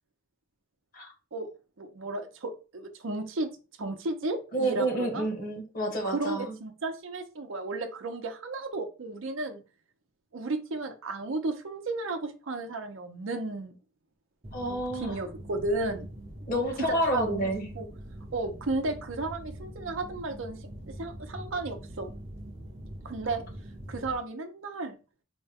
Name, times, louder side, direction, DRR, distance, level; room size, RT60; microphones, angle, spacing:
voice 1, 1.8-3.5 3.8-5.3 6.0-9.6 10.3-13.7 14.7-16.1 16.9-17.9 18.3-20.7 21.0-22.1 23.0-23.4 23.9-25.0, right 2 dB, 70° right, 6 dB, 0.6 m, -34 dB
voice 2, 4.5-6.5 14.5-15.2 16.5-17.7, right 1 dB, 40° left, 2 dB, 1.1 m, -29 dB
sound 1, 14.4-24.2, right 1 dB, 30° right, 0.8 m, -43 dB
4.4 x 2.2 x 3.4 m, 0.33 s
head